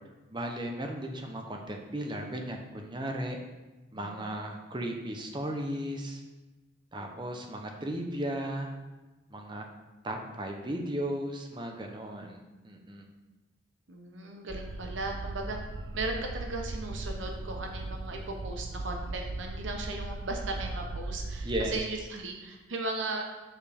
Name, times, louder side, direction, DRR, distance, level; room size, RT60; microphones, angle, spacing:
voice 1, 0.3-3.4 3.9-6.2 6.9-8.7 9.3-9.7 10.0-13.1 21.4-21.8, right 1 dB, 25° right, 3 dB, 0.8 m, -35 dB
voice 2, 4.0-4.5 13.9-15.6 15.9-23.2, right 2 dB, 85° right, 2 dB, 0.9 m, -37 dB
sound 1, 14.5-21.8, right 2 dB, 65° right, 0.5 m, -38 dB
7.4 x 6.9 x 3.5 m, 1.1 s
head